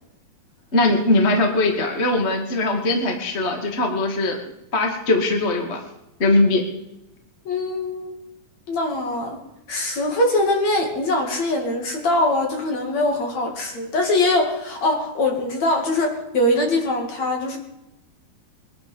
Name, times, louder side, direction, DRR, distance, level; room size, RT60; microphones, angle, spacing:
voice 1, 0.7-4.4 4.7-5.8 6.2-6.6, left 2 dB, 25° left, 2 dB, 1.4 m, -20 dB
voice 2, 7.4-8.2 8.7-9.4 9.7-17.6, left 2 dB, 45° left, 2 dB, 3.0 m, -22 dB
22.5 x 11.5 x 5.6 m, 0.90 s
omnidirectional pair, 4.9 m